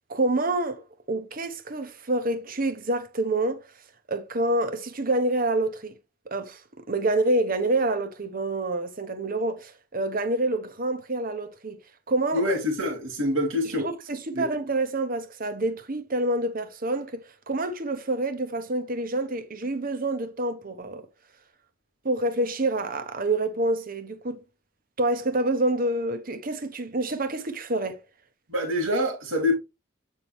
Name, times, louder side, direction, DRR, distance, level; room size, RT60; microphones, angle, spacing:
voice 1, 0.1-3.6 4.1-5.9 6.3-6.6 6.9-11.8 12.1-12.4 13.8-21.1 22.0-24.4 25.0-28.0, right 2 dB, 45° right, 1.0 m, -27 dB
voice 2, 12.3-13.9 14.3-14.5 28.5-29.5, left 1 dB, 85° right, 2.8 m, -25 dB
8.4 x 4.5 x 3.5 m
head